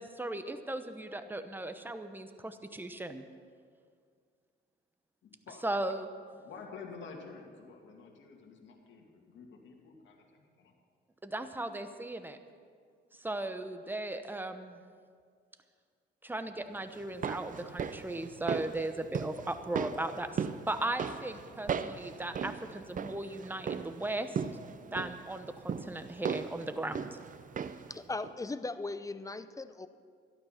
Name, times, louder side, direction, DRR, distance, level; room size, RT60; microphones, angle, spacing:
voice 1, 0.0-3.2 5.6-6.1 11.2-12.4 13.2-14.8 16.2-24.4 24.9-27.2, right 1 dB, 10° right, 9 dB, 1.0 m, -37 dB
voice 2, 5.2-5.6 6.3-10.7, left 5 dB, 70° left, 1 dB, 2.4 m, -50 dB
sound 1, 16.9-28.0 28.2-28.3, right 7 dB, 40° right, 0.6 m, -38 dB
voice 3, 27.6-29.9, left 3 dB, 15° left, 12 dB, 0.6 m, -39 dB
12.5 x 12.0 x 5.9 m, 2.1 s
cardioid pair, 90°, 20 cm